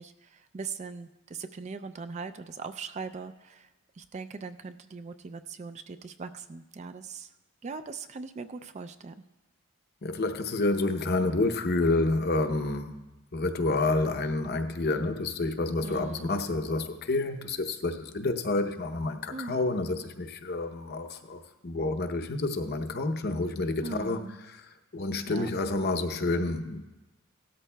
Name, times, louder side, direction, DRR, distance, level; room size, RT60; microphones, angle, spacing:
voice 1, 0.0-3.7 4.0-7.3 7.6-9.2 15.8-16.3 19.3-19.6 23.8-24.4 25.3-25.5, right 4 dB, 30° right, 11 dB, 0.3 m, -40 dB
voice 2, 10.0-13.0 13.3-26.8, left 2 dB, 50° left, 7 dB, 0.7 m, -29 dB
17.0 x 13.0 x 2.2 m, 1.1 s
head